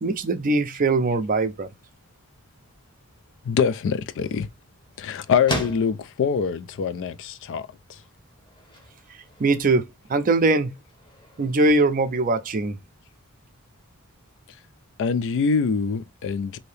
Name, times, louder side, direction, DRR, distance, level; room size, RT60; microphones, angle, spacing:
voice 1, 0.0-1.7 9.4-10.7 11.4-12.8, right 3 dB, 40° right, 0.4 m, -21 dB
voice 2, 3.4-4.5 5.0-7.7 15.0-16.6, left 6 dB, 55° left, 0.3 m, -24 dB
sound 1, 3.4-13.2, left 1 dB, 20° left, 0.8 m, -40 dB
2.7 x 2.7 x 3.2 m
head